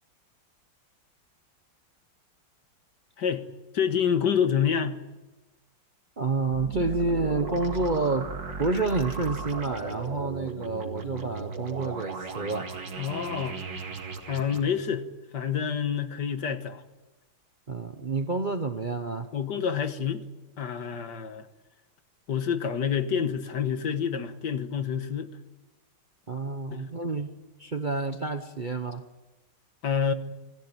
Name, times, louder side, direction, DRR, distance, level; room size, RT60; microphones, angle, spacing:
voice 1, 3.7-5.0 13.0-13.6 14.3-15.0 15.3-16.8 19.3-20.2 20.6-21.5 22.3-25.3 29.8-30.1, left 7 dB, 65° left, 1.9 m, -27 dB
voice 2, 6.2-8.3 8.6-12.7 17.7-19.3 26.3-27.3 27.6-29.0, right 3 dB, 35° right, 0.8 m, -29 dB
sound 1, 6.5-14.6, right 4 dB, 70° right, 2.7 m, -37 dB
25.0 x 15.0 x 9.0 m
omnidirectional pair, 2.0 m